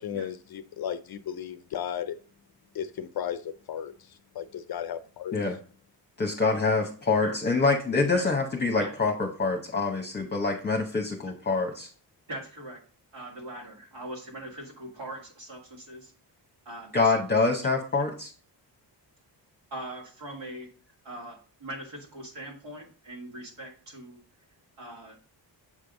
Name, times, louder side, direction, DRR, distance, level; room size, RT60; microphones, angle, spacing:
voice 1, 0.0-2.2 2.7-5.4, left 9 dB, 55° left, 0.5 m, -35 dB
voice 2, 6.2-11.9 16.9-18.3, left 3 dB, 25° left, 0.9 m, -26 dB
voice 3, 12.3-12.8 13.1-16.1 16.7-17.1 17.4-17.5 19.7-20.7 21.0-24.2 24.8-25.2, right 1 dB, 75° right, 2.2 m, -40 dB
7.4 x 3.5 x 3.9 m
cardioid pair, 85°, 44 cm